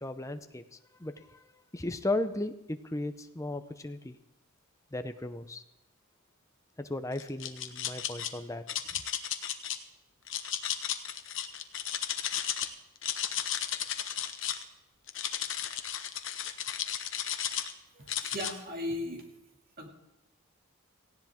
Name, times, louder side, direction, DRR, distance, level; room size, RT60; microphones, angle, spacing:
voice 1, 0.0-1.4 1.7-4.2 4.9-5.6 6.8-8.6, left 2 dB, 15° left, 8 dB, 0.7 m, -36 dB
sound 1, 7.2-8.3 8.7-9.8 10.3-12.7 13.0-14.6 15.1-17.7 18.1-18.5, left 10 dB, 60° left, 1.0 m, -34 dB
voice 2, 17.9-19.3 19.8-19.9, left 1 dB, 45° right, 2 dB, 2.4 m, -37 dB
18.0 x 15.5 x 3.6 m, 0.92 s
head